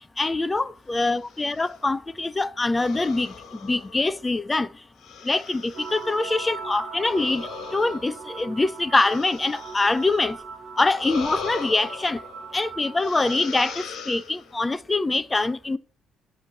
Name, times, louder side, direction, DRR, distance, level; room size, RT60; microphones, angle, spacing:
voice 1, 0.2-3.3 3.6-4.7 5.3-10.4 10.8-12.2 12.5-15.8, left 3 dB, 15° left, 0.3 m, -24 dB
sound 1, 1.1-1.8 2.7-4.3 5.0-6.2 6.9-10.3 10.9-12.6 13.0-14.7, left 6 dB, 65° left, 1.4 m, -40 dB
sound 2, 5.7-13.8, right 4 dB, 70° right, 1.3 m, -39 dB
8.3 x 3.0 x 5.2 m
cardioid pair, 135°, 0 cm